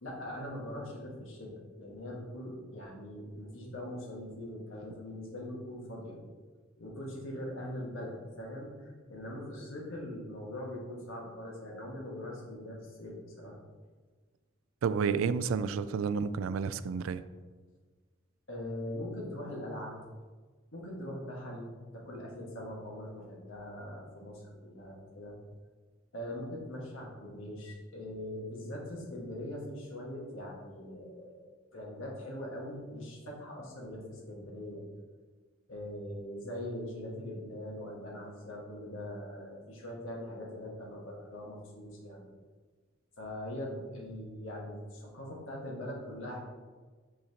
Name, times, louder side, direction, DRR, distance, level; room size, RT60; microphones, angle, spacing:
voice 1, 0.0-6.2 6.8-13.6 18.5-20.0 20.7-25.3 26.1-34.8 35.7-42.2 43.2-46.4, left 1 dB, 70° left, -2 dB, 1.6 m, -42 dB
voice 2, 14.8-17.2, right 6 dB, 75° right, 13 dB, 0.3 m, -30 dB
6.3 x 5.8 x 2.9 m, 1.4 s
head